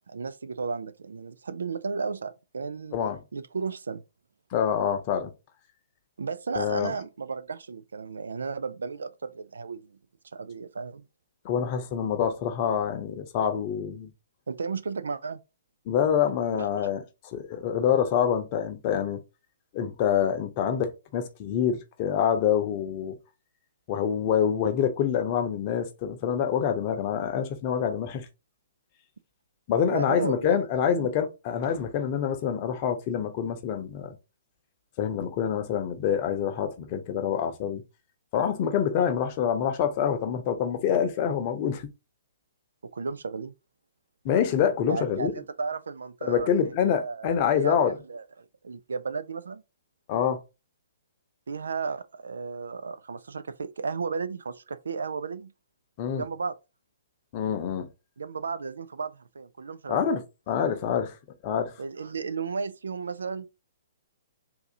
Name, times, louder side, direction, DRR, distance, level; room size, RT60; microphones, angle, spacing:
voice 1, 0.1-3.0 3.3-4.0 6.2-10.0 10.3-11.0 14.5-15.4 16.5-16.7 29.9-30.6 30.9-31.1 39.0-39.1 42.8-43.5 44.9-47.8 48.1-48.2 48.6-49.6 51.5-55.5 56.1-56.6 58.2-60.1 61.8-63.5, right 5 dB, 65° right, 0.4 m, -34 dB
voice 2, 4.5-5.3 6.5-6.9 11.4-14.1 15.9-19.2 19.7-23.2 23.9-28.3 29.7-34.2 35.0-37.8 38.3-41.9 44.2-45.3 46.2-48.0 50.1-50.4 56.0-56.2 57.3-57.9 59.9-60.2 60.5-61.1 61.4-61.7, left 8 dB, 35° left, 0.8 m, -26 dB
3.8 x 2.8 x 2.6 m
figure-of-eight pair, 120°, 0 cm